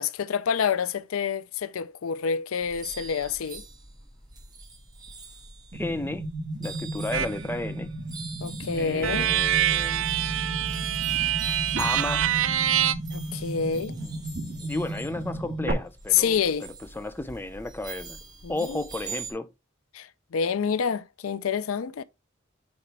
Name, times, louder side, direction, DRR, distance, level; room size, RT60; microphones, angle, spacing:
voice 1, 0.0-3.6 8.4-9.3 13.1-14.0 16.1-16.7 18.4-18.8 19.9-22.0, left 7 dB, 85° left, 0.5 m, -28 dB
sound 1, 2.6-19.3, right 4 dB, 20° right, 2.2 m, -43 dB
voice 2, 5.7-6.2 6.6-7.9 8.7-10.1 11.8-12.3 14.0-14.2 14.6-18.2 18.5-19.5, left 2 dB, 10° left, 0.5 m, -33 dB
sound 2, 5.7-15.7, right 1 dB, 45° right, 1.8 m, -35 dB
sound 3, 7.1-7.4 9.0-12.9, right 11 dB, 70° right, 0.5 m, -25 dB
8.7 x 4.1 x 3.4 m
head